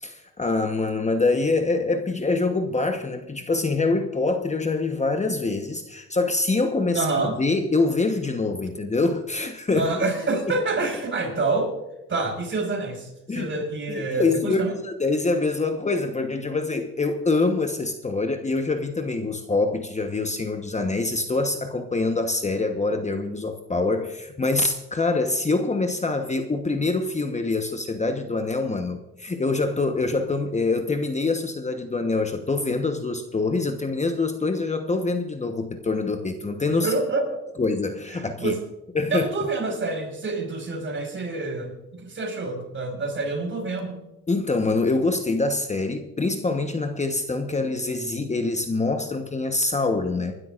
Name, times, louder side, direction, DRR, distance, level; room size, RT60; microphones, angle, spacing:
voice 1, 0.0-10.0 13.3-13.5 13.9-36.9 37.6-38.6 38.9-39.3 44.3-50.4, left 3 dB, 25° left, 6 dB, 1.1 m, -25 dB
voice 2, 6.9-7.4 9.7-11.7 12.1-14.7 36.7-37.4 38.2-38.6 39.1-44.0, right 3 dB, 40° right, 2 dB, 5.4 m, -27 dB
25.5 x 12.5 x 2.5 m, 0.98 s
cardioid pair, 90°, 30 cm